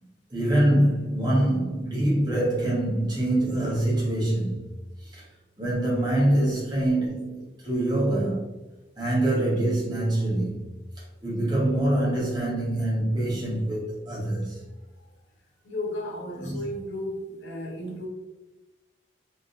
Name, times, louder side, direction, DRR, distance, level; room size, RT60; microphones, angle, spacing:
voice 1, 0.3-4.7 5.1-5.2 5.6-8.5 9.0-10.7 11.2-14.6 16.4-16.6, right 1 dB, 25° right, 1.4 m, -25 dB
voice 2, 15.6-18.1, left 1 dB, 80° left, 1.1 m, -34 dB
4.0 x 3.7 x 2.7 m
head